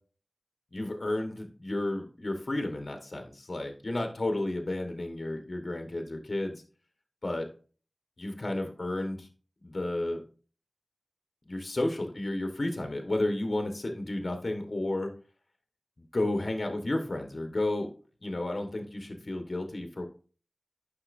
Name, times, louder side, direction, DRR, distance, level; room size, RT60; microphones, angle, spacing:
voice 1, 0.7-6.6 7.2-7.5 8.2-9.3 9.6-10.2 11.5-15.1 16.0-17.9 18.2-20.0, left 1 dB, 55° left, 4 dB, 1.3 m, -32 dB
9.9 x 5.7 x 2.6 m, 0.39 s
wide cardioid pair, 60°, 0 cm